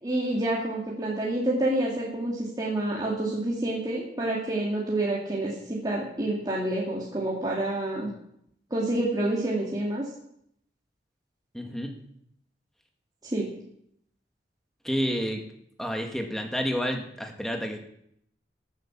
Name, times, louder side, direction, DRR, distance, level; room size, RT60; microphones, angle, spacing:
voice 1, 0.0-8.1 8.7-10.0 13.2-13.5, right 1 dB, 20° right, -4 dB, 2.2 m, -28 dB
voice 2, 11.5-12.0 14.8-15.5 15.8-17.8, equal, ahead, 3 dB, 1.7 m, -30 dB
13.5 x 8.3 x 7.2 m, 0.73 s
head